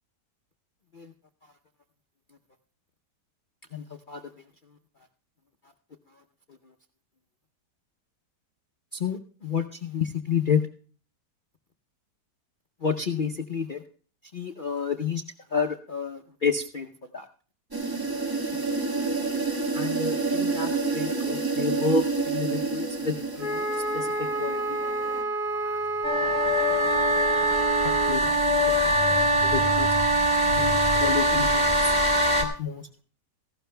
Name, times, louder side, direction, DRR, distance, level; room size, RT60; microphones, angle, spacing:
voice 1, 3.7-4.2 9.0-10.6 12.8-13.8 14.3-15.2 15.5-16.9 17.1-17.2 19.7-23.1 23.5-23.6 23.9-24.1 24.4-24.9 27.8-28.3 28.7-28.8 29.4-29.9 30.6-31.8 32.4-32.8, left 5 dB, 50° left, 5 dB, 0.5 m, -29 dB
sound 1, 17.7-25.2, right 3 dB, 15° right, 1.5 m, -29 dB
Wind instrument woodwind instrument, 23.4-28.2, right 1 dB, 30° right, 1.7 m, -29 dB
sound 2, 26.0-32.4, right 1 dB, 5° left, 3.0 m, -22 dB
voice 2, 28.0-29.9, left 2 dB, 85° right, 4 dB, 2.9 m, -37 dB
18.0 x 16.0 x 2.2 m, 0.41 s
omnidirectional pair, 1.8 m